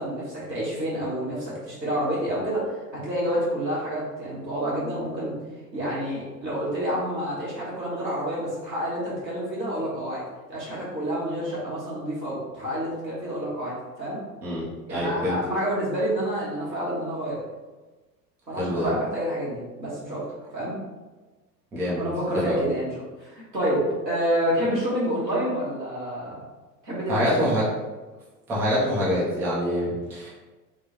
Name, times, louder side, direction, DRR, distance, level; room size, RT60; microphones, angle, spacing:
voice 1, 0.0-5.3 5.7-10.2 10.5-14.2 14.9-17.4 18.5-20.3 20.5-20.8 22.0-26.4 26.8-27.2, equal, 90° right, -8 dB, 1.4 m, -28 dB
voice 2, 14.4-15.4 18.6-18.9 21.7-22.0 22.3-22.6 27.1-27.7 28.5-30.3, equal, 5° right, -8 dB, 0.3 m, -25 dB
3.6 x 2.2 x 2.8 m, 1.2 s
figure-of-eight pair, 80°, 50 cm